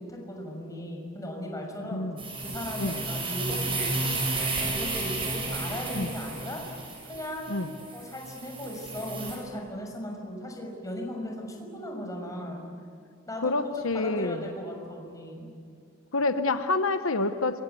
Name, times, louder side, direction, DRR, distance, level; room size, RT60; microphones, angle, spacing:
voice 1, 0.0-2.1 2.4-4.2 4.6-6.6 7.1-7.5 7.9-12.6 13.3-15.5, equal, 15° left, 1 dB, 6.3 m, -37 dB
sound 1, 2.2-9.4, right 2 dB, 25° right, 7.6 m, -32 dB
voice 2, 13.4-14.5 16.1-17.6, left 3 dB, 80° left, 8 dB, 1.0 m, -27 dB
28.0 x 25.0 x 8.3 m, 2.4 s
head